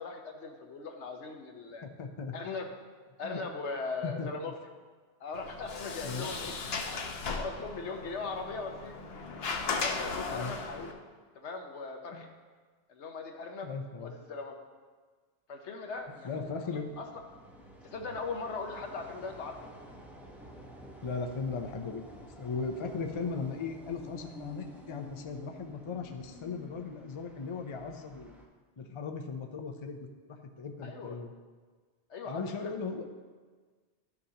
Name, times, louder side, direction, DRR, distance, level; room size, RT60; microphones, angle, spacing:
voice 1, 0.0-1.8 2.3-2.7 3.2-4.5 5.2-6.5 7.3-9.0 9.6-11.0 11.3-12.3 12.9-13.7 14.0-14.6 15.5-17.1 17.8-19.6 30.8-31.2 32.1-32.7, left 4 dB, 80° left, 3 dB, 1.2 m, -39 dB
voice 2, 1.8-2.4 3.2-3.4 4.0-4.3 6.0-6.3 10.3-10.5 12.1-12.2 13.6-14.1 16.2-16.9 21.0-28.3 28.8-30.0 30.3-31.3 32.2-33.0, left 4 dB, 35° left, 4 dB, 0.5 m, -37 dB
Sliding door, 5.3-10.9, left 4 dB, 65° left, 1.0 m, -37 dB
sound 1, 15.9-28.5, equal, ahead, 0.7 m, -51 dB
12.5 x 6.6 x 2.8 m, 1.5 s
omnidirectional pair, 1.2 m